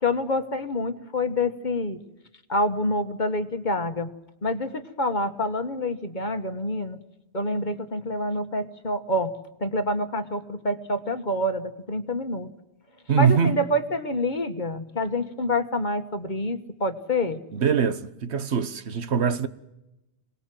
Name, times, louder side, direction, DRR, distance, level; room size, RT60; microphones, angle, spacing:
voice 1, 0.0-2.0 2.5-4.1 4.4-7.0 7.3-9.3 9.6-12.5 13.2-17.4, left 1 dB, 45° left, 1.5 m, -27 dB
voice 2, 13.1-13.6 17.5-19.5, right 7 dB, 75° right, 1.3 m, -23 dB
27.0 x 19.0 x 7.7 m
omnidirectional pair, 1.1 m